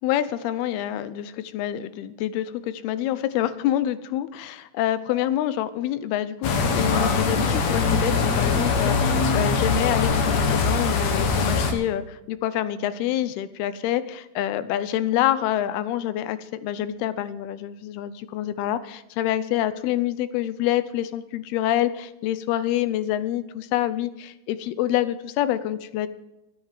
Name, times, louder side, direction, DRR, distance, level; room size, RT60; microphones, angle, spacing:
voice 1, 0.0-26.1, left 12 dB, 80° left, 15 dB, 2.6 m, -27 dB
sound 1, 6.4-11.7, left 4 dB, 55° left, 2.1 m, -22 dB
13.0 x 10.0 x 7.5 m, 0.95 s
omnidirectional pair, 4.6 m